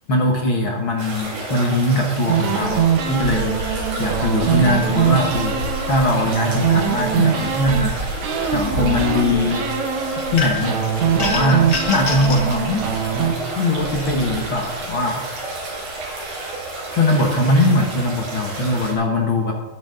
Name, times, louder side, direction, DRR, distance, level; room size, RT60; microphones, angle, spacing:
voice 1, 0.1-8.0 8.5-9.7 10.3-10.8 11.2-12.9 13.6-15.2 16.9-19.5, left 1 dB, 65° left, 0 dB, 1.2 m, -21 dB
sound 1, 1.0-18.9, right 2 dB, 85° right, 7.3 m, -29 dB
sound 2, 2.3-7.9 8.2-10.3 10.6-13.3, right 8 dB, 60° right, 2.0 m, -22 dB
sound 3, 10.4-10.8 11.2-12.5, left 3 dB, 80° left, 0.6 m, -26 dB
22.0 x 7.8 x 3.9 m, 1.2 s
omnidirectional pair, 4.5 m